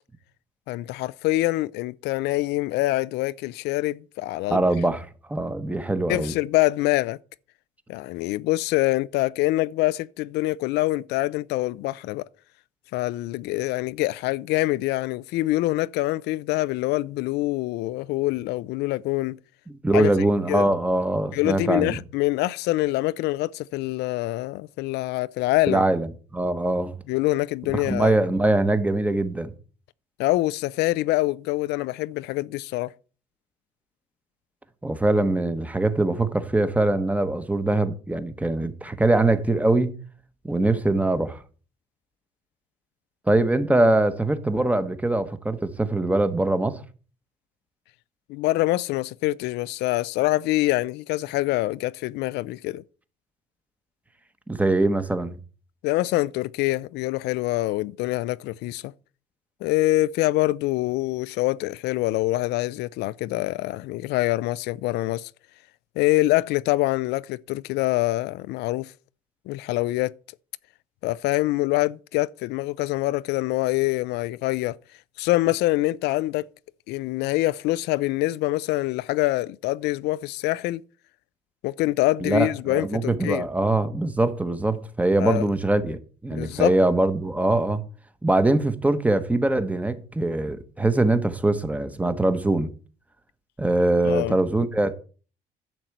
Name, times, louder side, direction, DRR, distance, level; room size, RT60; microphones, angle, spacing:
voice 1, 0.7-4.6 6.1-7.2 7.9-12.2 12.9-19.4 19.9-20.1 20.5-20.7 21.3-25.8 27.1-28.2 30.2-32.9 48.3-52.8 55.8-58.9 59.6-65.3 66.0-68.9 69.5-70.1 71.0-74.8 75.2-76.5 76.9-80.8 81.6-83.5 85.2-85.4 86.3-86.8 94.1-94.4, left 18 dB, 85° left, 0.4 m, -25 dB
voice 2, 4.5-6.3 19.7-22.0 25.7-27.0 27.7-29.5 34.8-39.9 40.4-41.4 43.3-46.8 54.5-55.3 82.2-87.8 88.2-92.7 93.6-94.9, right 2 dB, 10° right, 1.1 m, -22 dB
10.5 x 4.4 x 7.8 m
cardioid pair, 110°, 17 cm